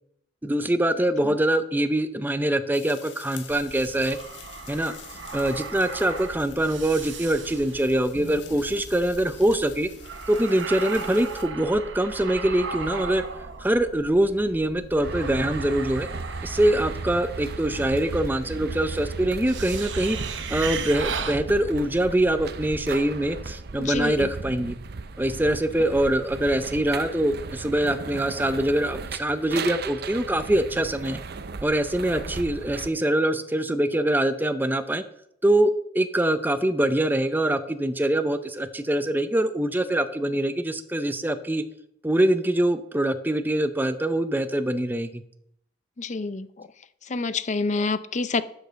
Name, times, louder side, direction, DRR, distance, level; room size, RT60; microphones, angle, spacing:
voice 1, 0.4-4.2 4.7-4.9 5.3-9.9 10.3-13.2 13.6-16.1 16.4-20.2 20.5-24.8 25.2-31.2 31.6-35.0 35.4-41.6 42.0-45.2, right 1 dB, 10° right, 10 dB, 0.5 m, -24 dB
sound 1, 2.7-11.4, left 7 dB, 75° left, 1.6 m, -47 dB
sound 2, 3.5-22.3, right 5 dB, 85° right, 0.9 m, -37 dB
sound 3, 15.0-32.9, right 4 dB, 60° right, 0.6 m, -36 dB
voice 2, 23.8-24.3 46.0-46.7 47.0-48.4, left 3 dB, 40° left, 14 dB, 0.5 m, -27 dB
8.0 x 6.6 x 6.7 m, 0.73 s
head